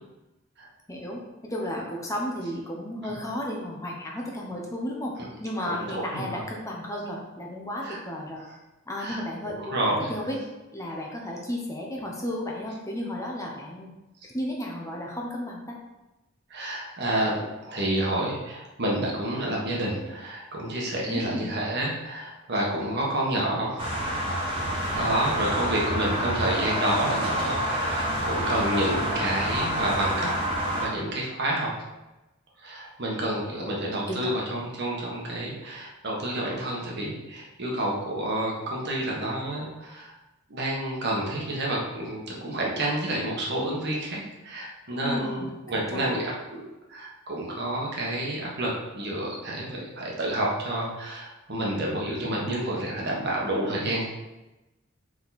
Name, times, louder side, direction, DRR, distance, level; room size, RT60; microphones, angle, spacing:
voice 1, 0.9-5.1 5.4-8.4 8.9-9.5 10.1-10.4 10.7-13.9 14.2-15.8 21.1-21.6 25.5-25.8 33.5-33.7 34.1-34.3 45.0-46.1, left 1 dB, 15° left, -1 dB, 0.9 m, -33 dB
voice 2, 5.6-6.4 7.8-8.0 8.4-8.5 9.0-10.1 16.5-23.9 24.9-30.3 30.8-31.7 32.6-40.1 40.5-46.6 46.9-54.1, right 1 dB, 55° right, -3 dB, 1.5 m, -29 dB
sound 1, 23.8-30.9, equal, 25° right, 1.6 m, -28 dB
5.0 x 5.0 x 4.1 m, 1.0 s
head